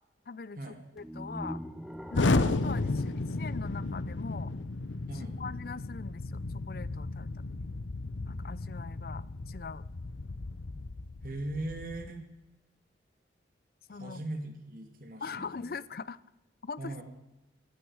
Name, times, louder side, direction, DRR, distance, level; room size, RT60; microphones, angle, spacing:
voice 1, 0.3-0.6 1.0-1.6 2.1-4.5 5.1-7.3 7.6-7.7 8.3-9.9 13.9-14.2 15.2-16.2 16.6-16.9, left 4 dB, 50° left, 19 dB, 0.5 m, -42 dB
sound 1, 1.0-4.1, equal, ahead, 1.2 m, -43 dB
Explosion, 2.1-12.1, left 3 dB, 90° left, 0.8 m, -33 dB
voice 2, 5.1-5.4 11.2-12.2 13.9-15.7 16.8-17.0, right 1 dB, 50° right, 5 dB, 2.1 m, -39 dB
15.5 x 15.0 x 4.8 m, 1.0 s
head